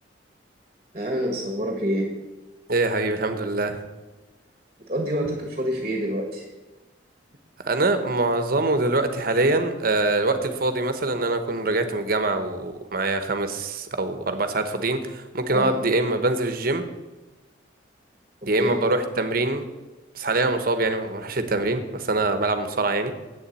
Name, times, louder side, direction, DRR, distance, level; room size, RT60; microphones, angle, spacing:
voice 1, 0.9-2.1 4.9-6.5 15.5-15.8 18.5-18.8, equal, 35° right, 2 dB, 1.3 m, -27 dB
voice 2, 2.7-3.8 7.6-16.8 18.4-19.6 20.1-23.1, right 2 dB, 50° right, 8 dB, 1.0 m, -24 dB
8.5 x 7.2 x 8.4 m, 1.1 s
head